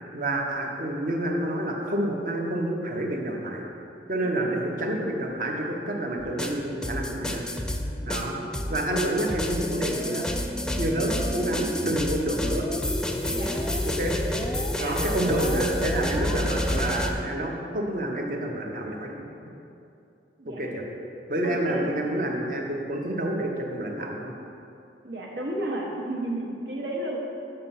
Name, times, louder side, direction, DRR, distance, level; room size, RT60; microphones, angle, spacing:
voice 1, 0.1-3.6 4.1-7.5 8.0-8.4 8.7-10.2 10.8-12.7 13.8-14.2 14.8-19.1 20.5-20.8 21.3-24.3, right 1 dB, 50° right, 0 dB, 0.9 m, -28 dB
voice 2, 4.2-4.6 13.2-13.6 14.7-15.0 20.4-20.6 21.4-22.0 25.0-27.2, right 1 dB, 80° right, -2 dB, 1.2 m, -33 dB
sound 1, 6.2-17.1, left 1 dB, 5° left, 0.3 m, -29 dB
6.6 x 4.4 x 5.7 m, 2.7 s
head